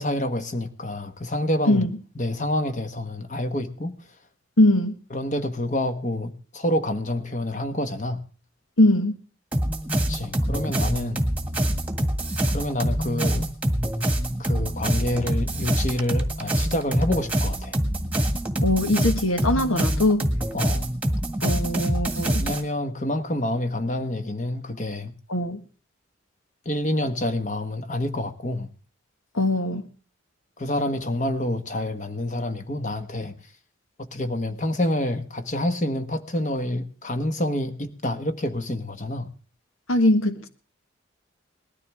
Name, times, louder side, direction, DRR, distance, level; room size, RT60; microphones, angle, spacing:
voice 1, 0.0-1.9 2.1-3.9 5.1-8.2 10.1-11.2 12.5-13.5 14.4-17.8 20.5-20.9 22.4-25.1 26.6-28.7 30.6-33.4 34.0-39.3, left 1 dB, 35° left, 1.4 m, -27 dB
voice 2, 4.6-5.0 8.8-9.1 18.6-20.3 21.4-22.4 25.3-25.6 29.3-29.9 39.9-40.5, left 1 dB, 90° left, 1.6 m, -21 dB
sound 1, 9.5-22.6, right 1 dB, 5° right, 1.7 m, -25 dB
20.0 x 13.5 x 3.5 m
head